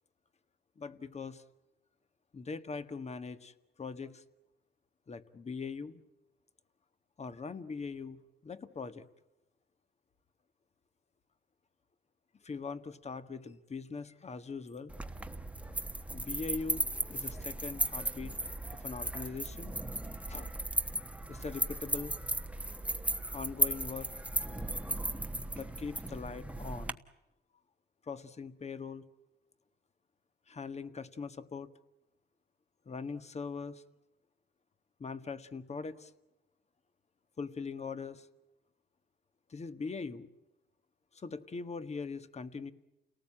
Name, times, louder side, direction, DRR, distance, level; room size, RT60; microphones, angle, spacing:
voice 1, 0.8-1.4 2.3-4.2 5.1-6.0 7.2-9.1 12.4-14.9 16.1-18.3 18.7-19.8 20.3-20.5 21.3-22.1 23.3-24.1 25.5-27.0 28.1-29.0 30.5-31.7 32.9-33.8 35.0-36.1 37.4-38.3 39.5-40.3 41.1-42.7, left 4 dB, 35° left, 11 dB, 1.6 m, -41 dB
sound 1, 14.9-26.9, right 1 dB, 5° right, 1.2 m, -36 dB
29.5 x 18.5 x 8.8 m, 0.97 s
cardioid pair, 90°, 20 cm